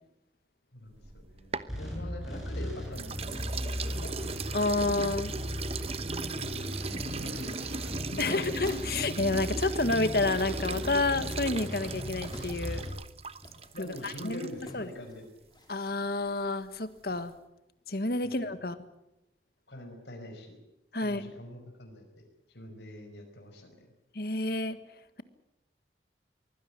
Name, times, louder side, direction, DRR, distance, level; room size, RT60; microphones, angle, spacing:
voice 1, 0.7-4.1 6.4-8.5 13.7-15.2 18.2-18.6 19.7-20.6 21.0-22.1 22.5-23.7, left 1 dB, 80° left, 3 dB, 5.3 m, -44 dB
sound 1, 0.9-2.5 2.9-14.7, right 4 dB, 35° right, 0.9 m, -38 dB
sound 2, 1.7-12.9, equal, ahead, 7.5 m, -37 dB
voice 2, 4.5-5.3 8.2-12.8 13.8-14.4 14.7-14.9 15.7-17.3 17.9-18.8 20.9-21.3 24.1-24.8, left 2 dB, 55° left, 12 dB, 1.6 m, -29 dB
sound 3, 5.1-5.4 6.2-7.5 7.8-9.0 9.7-17.3, left 1 dB, 25° left, 3.8 m, -53 dB
23.5 x 16.5 x 9.6 m, 0.88 s
head